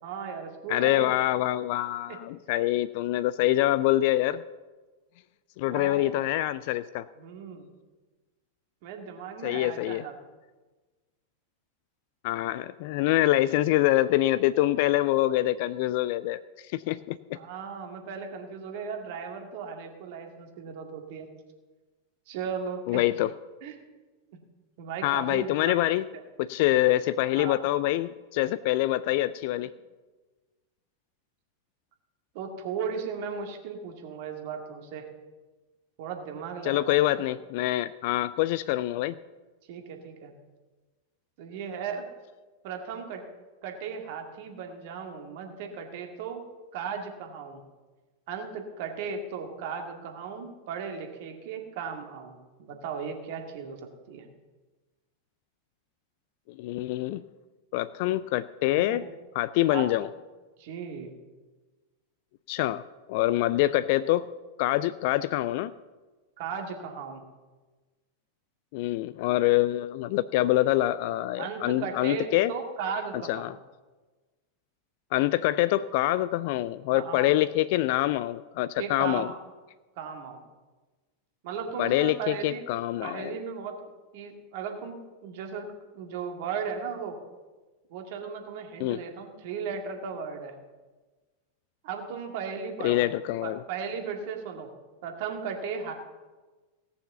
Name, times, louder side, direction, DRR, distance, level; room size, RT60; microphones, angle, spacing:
voice 1, 0.0-1.1 2.1-2.2 5.7-6.1 7.2-7.7 8.8-10.1 17.3-21.3 22.3-23.0 23.6-23.8 24.8-25.8 27.4-27.6 32.3-35.1 36.0-37.1 39.7-40.3 41.4-42.0 42.6-43.2 43.6-46.4 46.7-47.6 48.3-54.2 58.9-59.1 59.7-59.9 60.6-61.1 66.4-67.2 71.4-73.5 76.9-77.3 78.8-79.4 80.0-80.4 81.4-82.6 83.0-85.7 85.9-87.2 87.9-90.5 91.8-93.0 93.4-94.7 95.0-95.9, right 6 dB, 50° right, 3 dB, 2.1 m, -36 dB
voice 2, 0.7-4.4 5.6-7.1 9.4-10.0 12.2-17.4 22.9-23.3 25.0-26.0 26.4-29.7 36.6-39.2 56.6-57.2 57.7-59.0 59.4-60.1 62.5-62.8 63.1-64.3 64.6-65.7 68.7-72.5 73.3-73.5 75.1-79.3 81.8-83.4 88.8-89.0 92.8-93.6, left 15 dB, 50° left, 15 dB, 0.4 m, -25 dB
17.0 x 7.0 x 6.8 m, 1.3 s
figure-of-eight pair, 90°, 0 cm